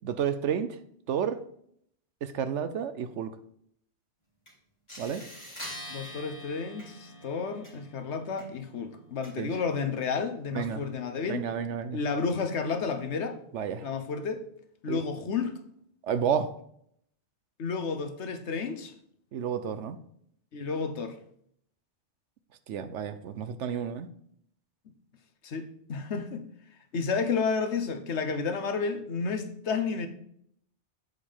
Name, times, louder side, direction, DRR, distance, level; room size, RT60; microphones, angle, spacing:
voice 1, 0.0-0.8 1.1-1.4 2.2-3.3 5.0-5.2 9.4-9.5 10.5-10.8 11.3-12.0 13.5-13.9 14.9-15.0 16.0-16.5 19.3-20.0 22.7-24.1, right 8 dB, 90° right, 1.1 m, -31 dB
sound 1, 4.5-4.6 4.9-9.8, equal, 25° left, 3.0 m, -46 dB
voice 2, 5.9-11.5 11.9-13.4 13.8-14.4 14.8-15.6 17.6-18.9 20.5-21.2 25.4-26.5 26.9-30.1, left 5 dB, 75° left, 1.3 m, -31 dB
8.0 x 5.2 x 5.5 m
omnidirectional pair, 1.2 m